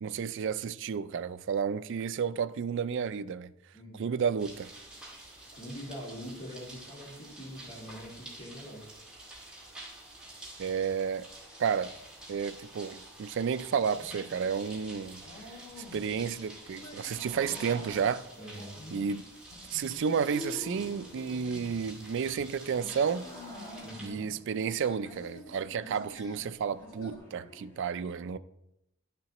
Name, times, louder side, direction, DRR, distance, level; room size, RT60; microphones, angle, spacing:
voice 1, 0.0-3.5 3.9-4.7 10.6-11.3 11.6-11.9 12.3-15.2 15.8-18.2 18.9-19.3 19.7-23.3 24.0-28.4, right 6 dB, 55° right, 0.3 m, -31 dB
voice 2, 3.7-4.1 5.5-8.8 18.4-18.8 23.8-24.2, equal, 35° left, 2.1 m, -44 dB
sound 1, 4.4-24.1, right 1 dB, 5° right, 2.0 m, -49 dB
sound 2, 13.9-27.2, left 2 dB, 80° left, 1.7 m, -51 dB
sound 3, 17.0-18.4 19.9-21.6 22.7-25.4 26.8-27.8, left 1 dB, 10° left, 1.9 m, -47 dB
11.0 x 6.7 x 2.9 m
head